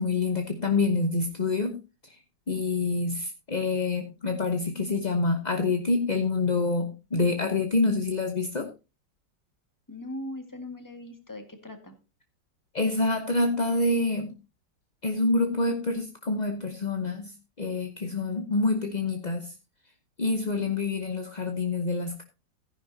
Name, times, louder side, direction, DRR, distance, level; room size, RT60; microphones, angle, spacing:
voice 1, 0.0-1.8 2.0-2.2 2.5-8.7 12.7-14.3 15.0-19.5 20.2-22.2, left 3 dB, 35° left, 5 dB, 0.8 m, -27 dB
voice 2, 9.9-12.0, left 1 dB, 10° left, 6 dB, 1.7 m, -39 dB
14.5 x 10.0 x 2.8 m, 0.28 s
omnidirectional pair, 2.0 m